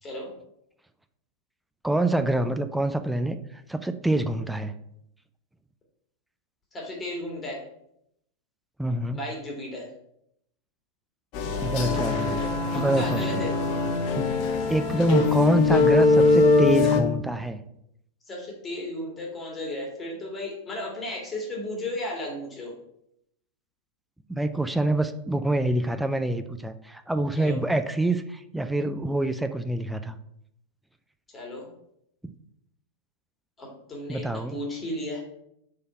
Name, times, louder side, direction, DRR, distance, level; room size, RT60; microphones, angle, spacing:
voice 1, 0.0-0.3 6.7-7.6 9.1-9.9 12.7-13.5 18.3-22.8 27.4-27.6 31.3-31.7 33.6-35.2, left 1 dB, 20° left, -2 dB, 2.1 m, -34 dB
voice 2, 1.8-4.7 8.8-9.2 11.6-12.4 12.8-13.4 14.2-14.3 14.7-17.6 24.3-30.2 34.1-34.6, right 1 dB, 5° right, 9 dB, 0.4 m, -26 dB
sound 1, 11.3-17.0, left 3 dB, 40° left, 0.9 m, -22 dB
5.2 x 4.0 x 5.7 m, 0.76 s
figure-of-eight pair, 90°, 0 cm